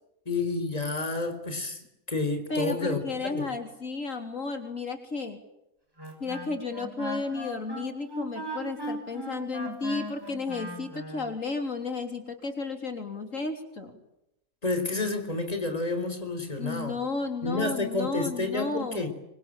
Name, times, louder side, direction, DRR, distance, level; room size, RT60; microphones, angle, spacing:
voice 1, 0.3-3.6 14.6-17.0 17.4-19.1, left 3 dB, 30° left, 8 dB, 4.2 m, -30 dB
voice 2, 2.5-5.4 6.2-14.0 16.6-19.1, left 3 dB, 70° left, 6 dB, 3.9 m, -33 dB
Wind instrument woodwind instrument, 6.0-11.3, right 1 dB, 15° right, 6.0 m, -38 dB
26.5 x 25.0 x 9.0 m, 0.86 s
omnidirectional pair, 1.4 m